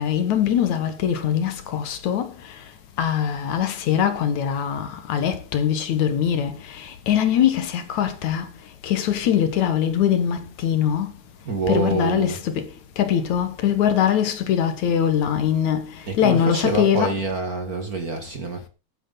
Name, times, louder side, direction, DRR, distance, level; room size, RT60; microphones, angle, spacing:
voice 1, 0.0-2.3 3.0-6.5 7.1-8.5 8.8-11.1 11.7-12.6 13.0-15.9 16.2-17.2, left 9 dB, 65° left, 2.5 m, -22 dB
voice 2, 11.4-12.4 16.1-18.7, right 3 dB, 40° right, 1.3 m, -26 dB
13.0 x 9.1 x 4.0 m
omnidirectional pair, 3.9 m